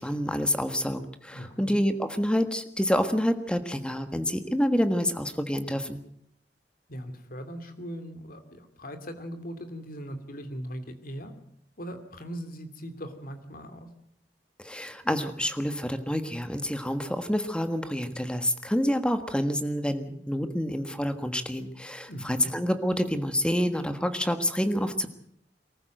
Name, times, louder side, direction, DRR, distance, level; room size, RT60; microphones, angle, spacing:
voice 1, 0.0-6.0 14.6-25.1, equal, 5° left, 9 dB, 1.5 m, -28 dB
voice 2, 1.3-1.8 6.9-11.3 11.8-13.9 22.1-22.5, equal, 55° left, 8 dB, 2.6 m, -39 dB
23.5 x 14.5 x 7.8 m, 0.68 s
head